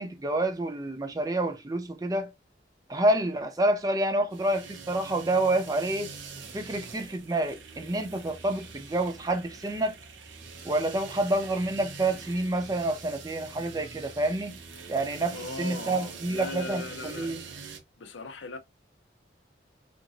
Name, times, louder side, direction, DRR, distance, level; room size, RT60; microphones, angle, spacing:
voice 1, 0.0-2.3 2.9-6.1 6.5-9.9 10.6-14.5 14.9-17.4, right 1 dB, 20° right, 0.4 m, -28 dB
sound 1, 4.3-17.8, right 5 dB, 85° right, 0.7 m, -44 dB
voice 2, 15.3-17.3 18.0-18.6, left 3 dB, 90° left, 0.5 m, -39 dB
2.9 x 2.6 x 2.4 m
head